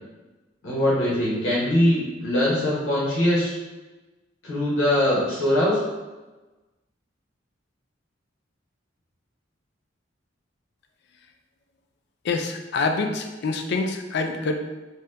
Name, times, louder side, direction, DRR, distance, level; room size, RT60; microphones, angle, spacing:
voice 1, 0.6-3.5 4.4-5.8, left 1 dB, 85° left, -6 dB, 1.0 m, -22 dB
voice 2, 12.3-14.6, left 3 dB, 60° left, 5 dB, 0.4 m, -26 dB
2.8 x 2.2 x 3.2 m, 1.1 s
head